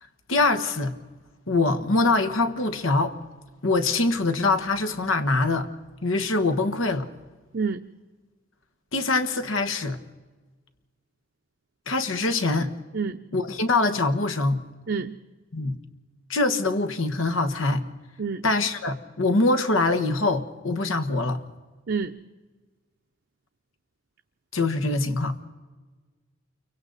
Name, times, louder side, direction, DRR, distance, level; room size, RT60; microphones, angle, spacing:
voice 1, 0.3-0.9 1.5-3.1 3.6-5.7 6.0-7.1 8.9-10.0 11.9-12.7 13.3-14.6 15.5-15.8 16.3-17.8 18.4-21.4 24.5-25.4, left 3 dB, 90° left, 9 dB, 1.4 m, -23 dB
voice 2, 7.5-7.8 12.9-13.2 14.9-15.2 18.2-18.4 21.9-22.1, right 5 dB, 60° right, 4 dB, 0.6 m, -27 dB
29.0 x 24.0 x 4.1 m, 1.3 s
head